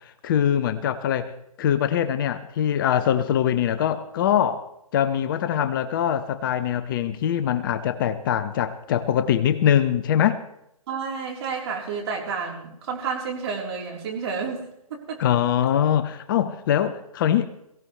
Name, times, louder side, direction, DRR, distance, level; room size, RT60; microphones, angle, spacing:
voice 1, 0.2-1.3 1.6-10.4 15.2-17.5, left 9 dB, 35° left, 12 dB, 0.7 m, -23 dB
voice 2, 10.9-14.6 14.9-15.2, right 5 dB, 45° right, 0 dB, 3.9 m, -30 dB
22.5 x 16.0 x 3.3 m, 0.80 s
figure-of-eight pair, 135°, 19 cm